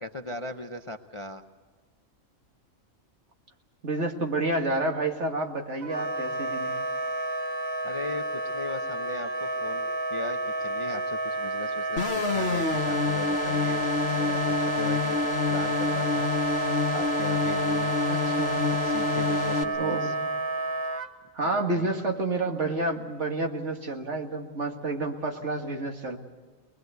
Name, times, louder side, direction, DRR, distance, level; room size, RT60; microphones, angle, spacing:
voice 1, 0.0-1.4 7.8-15.2 15.5-16.3 16.9-18.0 18.8-20.2 21.4-22.0, left 2 dB, 30° left, 6 dB, 0.6 m, -38 dB
voice 2, 3.8-6.7 18.1-18.7 19.8-20.1 21.3-26.2, right 2 dB, 60° right, 2 dB, 2.3 m, -29 dB
Wind instrument woodwind instrument, 5.8-21.1, right 2 dB, 90° right, 1.6 m, -30 dB
sound 1, 12.0-19.6, left 5 dB, 50° left, 1.4 m, -28 dB
22.5 x 20.5 x 8.1 m, 1.4 s
omnidirectional pair, 1.4 m